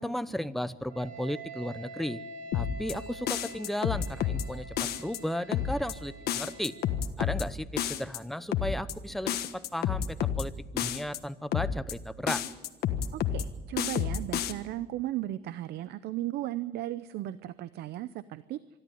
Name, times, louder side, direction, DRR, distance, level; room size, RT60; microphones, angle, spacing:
voice 1, 0.0-2.2 2.5-6.8 7.2-12.4, equal, ahead, 13 dB, 0.8 m, -35 dB
Wind instrument woodwind instrument, 0.9-7.0, right 2 dB, 55° right, 3.1 m, -46 dB
sound 1, 2.5-2.9 3.3-4.4 4.8-5.2 5.5-5.9 6.3-7.4 7.8-8.2 8.5-8.9 9.3-10.4 10.8-11.2 11.5-11.9 12.3-13.4 13.8-14.5, left 9 dB, 70° left, 1.4 m, -30 dB
voice 2, 13.1-18.6, right 14 dB, 75° right, 15 dB, 0.7 m, -36 dB
25.0 x 12.5 x 9.3 m, 1.2 s
cardioid pair, 110°, 17 cm